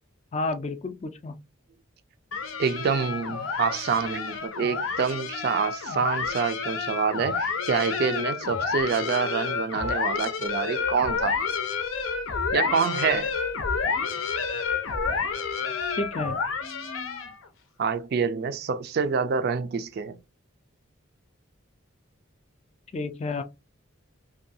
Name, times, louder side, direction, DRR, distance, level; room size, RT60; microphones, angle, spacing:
voice 1, 0.3-1.4 15.9-16.4 22.9-23.4, left 3 dB, 35° left, 0.3 m, -31 dB
sound 1, 2.3-17.4, left 5 dB, 85° left, 0.6 m, -29 dB
voice 2, 2.6-11.4 12.5-13.3 17.8-20.2, right 6 dB, 50° right, 0.3 m, -27 dB
2.6 x 2.3 x 2.6 m
head